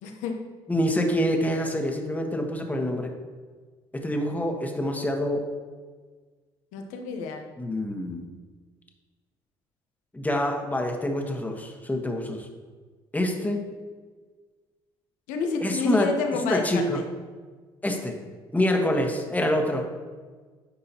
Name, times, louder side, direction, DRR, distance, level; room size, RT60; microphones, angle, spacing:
voice 1, 0.0-0.3 6.7-7.4 15.3-17.0, left 4 dB, 75° left, 4 dB, 0.9 m, -29 dB
voice 2, 0.7-3.1 3.9-5.5 7.6-8.3 10.1-12.5 13.1-13.6 15.6-16.1 16.5-17.0 17.8-18.1 18.5-19.9, left 1 dB, 10° left, 2 dB, 1.3 m, -26 dB
9.8 x 5.4 x 2.9 m, 1.4 s
hypercardioid pair, 60°, 13 cm